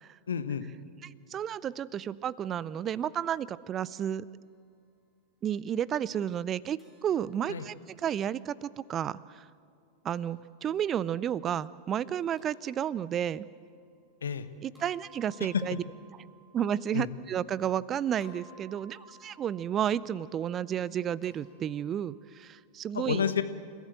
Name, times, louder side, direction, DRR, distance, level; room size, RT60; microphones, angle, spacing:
voice 1, 0.3-0.7 7.5-7.7 14.2-14.5 15.4-15.6 16.9-17.1 22.9-23.4, left 7 dB, 70° left, 11 dB, 1.1 m, -30 dB
voice 2, 1.3-4.2 5.4-7.7 8.0-9.2 10.0-13.5 14.6-15.8 16.5-23.2, right 9 dB, 25° right, 20 dB, 0.6 m, -32 dB
sound 1, 6.8-8.9 10.1-11.1 12.4-13.6 14.8-17.8 18.2-22.6, right 1 dB, 5° right, 6.7 m, -59 dB
30.0 x 15.0 x 7.8 m, 2.4 s
figure-of-eight pair, 90°, 0 cm